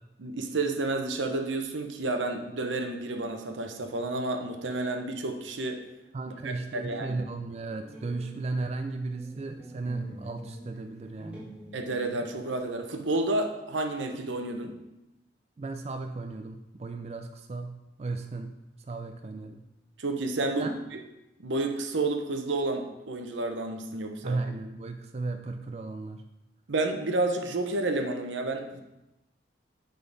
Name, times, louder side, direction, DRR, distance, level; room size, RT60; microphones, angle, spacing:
voice 1, 0.2-5.8 6.3-7.2 11.7-14.8 20.0-21.0 21.4-24.4 26.7-28.8, right 2 dB, 90° right, 4 dB, 0.8 m, -30 dB
voice 2, 6.1-11.5 15.6-18.6 18.9-19.6 20.6-20.7 24.2-26.2, right 3 dB, 35° right, 6 dB, 0.3 m, -35 dB
sound 1, 7.8-8.8 9.1-12.7, equal, 10° right, 1.6 m, -46 dB
9.0 x 3.8 x 3.9 m, 0.95 s
head